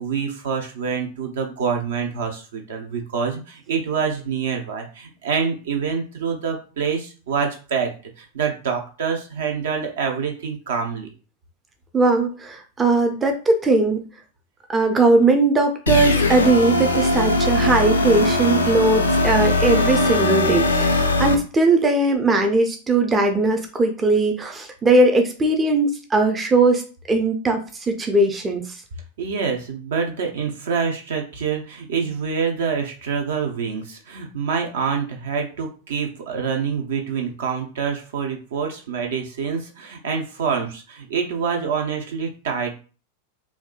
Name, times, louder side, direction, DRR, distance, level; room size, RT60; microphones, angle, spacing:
voice 1, 0.0-7.9 8.2-11.1 29.2-42.7, right 6 dB, 60° right, 2 dB, 0.6 m, -26 dB
voice 2, 11.9-14.0 14.7-26.8 27.1-28.8, right 2 dB, 15° right, 4 dB, 0.5 m, -19 dB
sound 1, 15.9-21.3, left 2 dB, 80° left, 0.5 m, -20 dB
3.4 x 2.6 x 2.3 m, 0.37 s
figure-of-eight pair, 90°, 0 cm